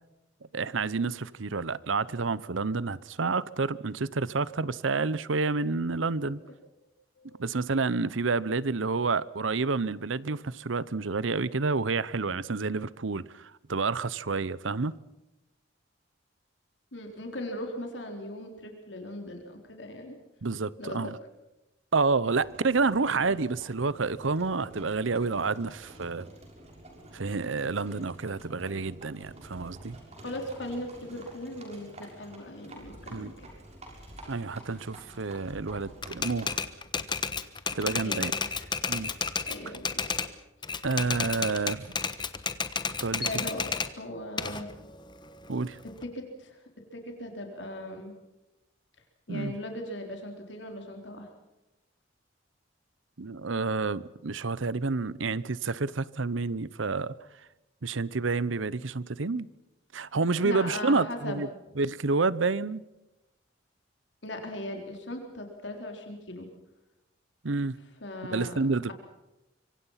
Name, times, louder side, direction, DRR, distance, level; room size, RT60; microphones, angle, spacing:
voice 1, 0.5-6.4 7.4-14.9 20.4-21.2 21.9-26.3 27.1-30.0 33.1-33.3 34.3-36.6 37.7-38.3 38.9-39.1 40.8-42.0 43.0-43.2 45.5-45.8 49.3-49.6 53.2-57.1 57.8-59.5 59.9-61.5 61.8-62.8 67.4-67.8 68.3-68.9, right 4 dB, 85° right, 0.8 m, -29 dB
voice 2, 16.9-20.2 20.8-21.1 23.1-23.3 30.2-33.5 38.0-38.7 39.5-40.0 43.2-43.7 44.0-44.7 46.0-46.6 46.9-48.1 49.3-51.3 60.4-61.4 64.2-66.5 68.0-68.6, left 1 dB, 65° left, 4.0 m, -38 dB
Livestock farm animals working animals, 22.3-36.7, right 1 dB, 35° right, 6.5 m, -49 dB
Typewriter, 36.0-40.3 40.6-43.9 44.4-46.0, left 5 dB, 25° left, 1.2 m, -32 dB
25.5 x 24.5 x 5.8 m
head